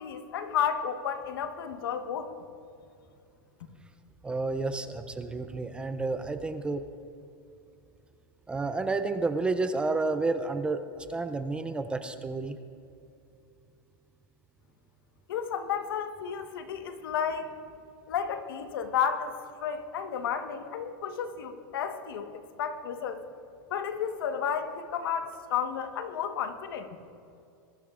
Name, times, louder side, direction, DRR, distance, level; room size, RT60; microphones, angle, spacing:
voice 1, 0.0-2.3 15.3-17.5 18.1-19.3 19.6-23.2 23.7-26.9, left 8 dB, 80° left, 7 dB, 1.3 m, -32 dB
voice 2, 4.2-6.8 8.5-12.6, right 3 dB, 10° right, 9 dB, 0.4 m, -30 dB
21.5 x 13.5 x 2.5 m, 2.6 s
supercardioid pair, 155°, 12 cm